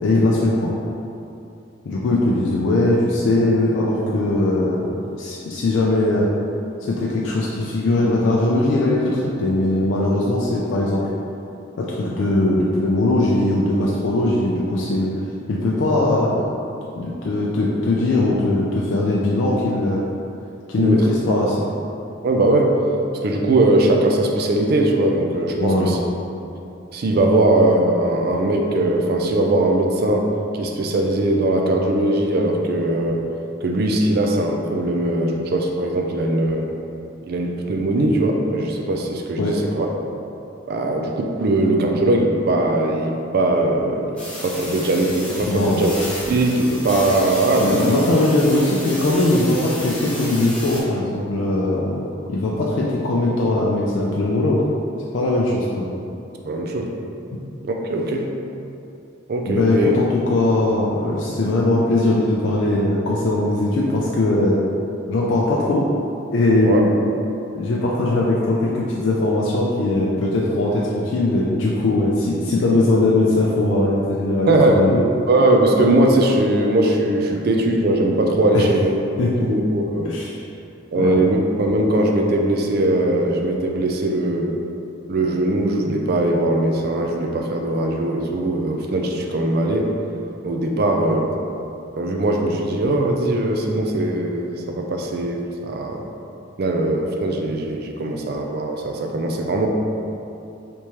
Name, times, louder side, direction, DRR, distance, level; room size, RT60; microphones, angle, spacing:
voice 1, 0.0-0.7 1.8-6.3 6.8-11.0 11.8-15.1 15.5-16.5 17.0-20.0 20.7-21.7 25.6-25.9 39.4-39.6 45.5-45.9 47.6-54.6 55.1-56.0 59.4-64.6 65.1-65.8 66.3-66.9 67.5-75.0 78.5-78.6 79.2-79.5 80.0-80.4 80.9-81.2, left 2 dB, 65° left, -5 dB, 0.4 m, -20 dB
voice 2, 22.2-22.8 23.2-26.0 26.4-26.5 26.9-33.2 33.6-36.7 37.3-39.9 40.7-44.1 44.4-45.9 46.3-48.0 56.4-56.9 57.6-58.3 59.3-59.9 66.6-66.8 74.5-74.8 75.3-80.2 80.9-84.6 85.1-90.0 90.4-91.3 92.0-96.1 96.6-99.7, right 1 dB, 55° right, 2 dB, 0.4 m, -20 dB
sound 1, 44.2-50.8, left 1 dB, 5° left, 0.7 m, -32 dB
3.4 x 3.0 x 2.8 m, 2.7 s
head